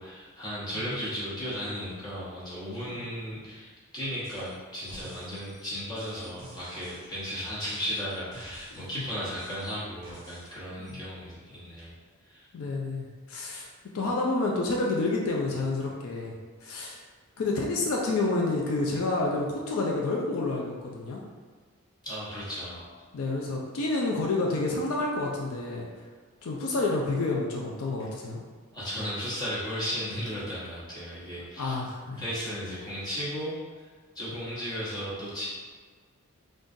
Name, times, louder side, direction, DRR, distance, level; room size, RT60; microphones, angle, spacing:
voice 1, 0.0-11.9 12.2-12.5 22.0-22.8 28.7-31.7 32.2-33.6 34.1-35.5, equal, 20° left, -10 dB, 1.0 m, -35 dB
sound 1, 4.2-4.5 4.8-8.9 9.4-10.5 10.8-10.9, right 1 dB, 20° right, 1.0 m, -50 dB
voice 2, 8.7-9.0 10.8-11.0 12.5-13.7 13.9-16.3 16.6-17.0 17.4-21.2 23.1-25.9 26.4-28.4 31.6-32.2, left 2 dB, 75° left, -1 dB, 0.4 m, -29 dB
3.7 x 2.4 x 2.5 m, 1.5 s
head